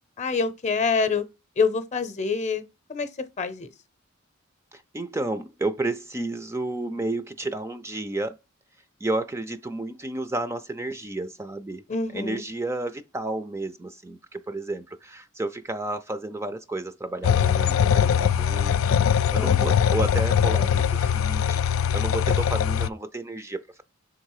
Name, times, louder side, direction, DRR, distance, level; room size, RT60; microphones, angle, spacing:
voice 1, 0.2-1.2 1.6-2.6 2.9-3.1 3.4-3.7 11.9-12.4 19.4-19.8, left 4 dB, 35° left, 0.7 m, -26 dB
voice 2, 4.7-8.4 9.0-11.8 12.1-18.9 19.3-23.8, right 2 dB, 15° right, 0.4 m, -31 dB
sound 1, 17.2-22.9, left 8 dB, 80° left, 0.3 m, -21 dB
5.9 x 3.7 x 4.7 m
head